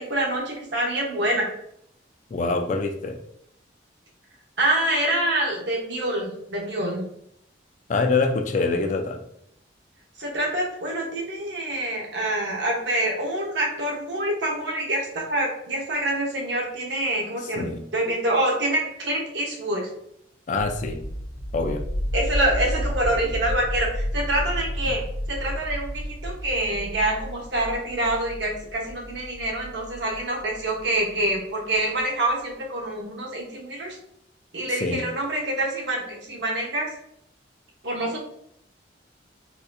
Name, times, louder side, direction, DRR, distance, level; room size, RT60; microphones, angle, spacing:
voice 1, 0.0-1.5 4.6-7.0 10.2-17.7 17.9-19.8 22.1-25.0 25.3-34.0 34.5-36.9 37.8-38.2, right 1 dB, 70° right, -1 dB, 0.9 m, -26 dB
voice 2, 2.3-3.2 7.9-9.2 17.6-17.8 20.5-21.0 21.5-21.9 34.8-35.0, left 3 dB, 40° left, 5 dB, 0.3 m, -25 dB
sound 1, 20.6-31.3, equal, 65° left, 0.8 m, -31 dB
4.0 x 2.4 x 2.5 m, 0.73 s
head